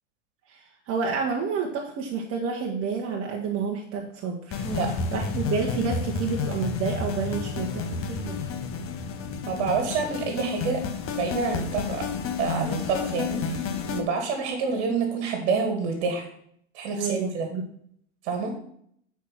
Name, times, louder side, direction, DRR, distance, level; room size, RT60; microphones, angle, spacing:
voice 1, 0.5-4.6 5.1-8.4 17.0-17.6, right 5 dB, 40° right, 0 dB, 1.4 m, -29 dB
sound 1, 4.5-14.0, left 5 dB, 40° left, 1.2 m, -31 dB
voice 2, 9.5-10.8 11.1-12.1 12.4-16.3 16.7-17.5 18.2-18.5, right 4 dB, 60° right, 4 dB, 2.1 m, -28 dB
8.2 x 4.8 x 5.7 m, 0.66 s
hypercardioid pair, 100°, 35 cm